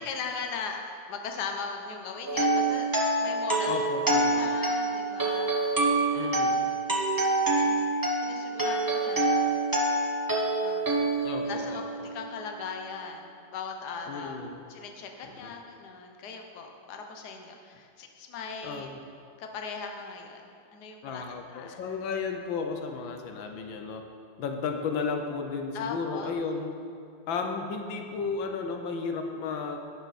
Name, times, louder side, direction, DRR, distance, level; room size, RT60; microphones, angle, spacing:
voice 1, 0.0-2.9 3.2-3.7 4.4-5.8 6.1-6.3 7.5-7.8 8.2-9.5 10.6-10.9 11.4-14.4 14.7-18.9 19.4-21.2 21.5-21.8 25.7-26.3, left 5 dB, 60° left, 3 dB, 1.5 m, -39 dB
sound 1, 2.3-12.2, right 2 dB, 15° right, 0.8 m, -26 dB
voice 2, 3.7-4.5 6.1-6.6 11.2-12.1 14.1-14.6 15.2-15.5 18.6-19.0 21.0-24.0 24.4-26.8 27.3-29.8, left 5 dB, 90° left, 4 dB, 1.6 m, -34 dB
11.5 x 10.5 x 4.2 m, 2.4 s
omnidirectional pair, 2.0 m